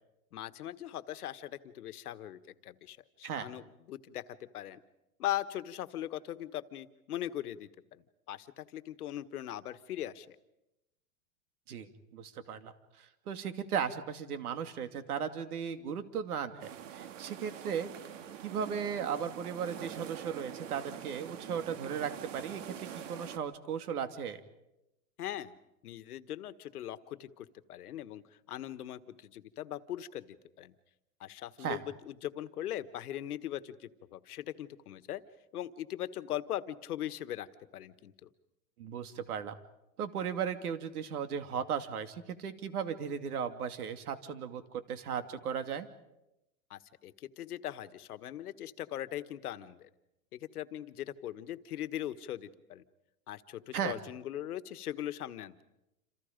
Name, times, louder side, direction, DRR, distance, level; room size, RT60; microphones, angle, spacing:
voice 1, 0.3-4.2 4.5-4.8 5.2-8.0 8.3-10.3 25.2-25.5 25.8-30.7 31.2-35.2 35.5-37.5 37.7-38.3 46.7-49.9 50.3-52.8 53.3-55.6, left 12 dB, 80° left, 12 dB, 1.5 m, -40 dB
voice 2, 11.7-12.7 13.0-17.9 18.4-24.4 31.6-31.8 38.8-39.6 40.0-45.9 53.7-54.0, right 7 dB, 80° right, 9 dB, 2.6 m, -36 dB
sound 1, 16.6-23.4, right 9 dB, 55° right, 1.8 m, -45 dB
28.0 x 27.5 x 5.2 m, 0.92 s
supercardioid pair, 175°, 44 cm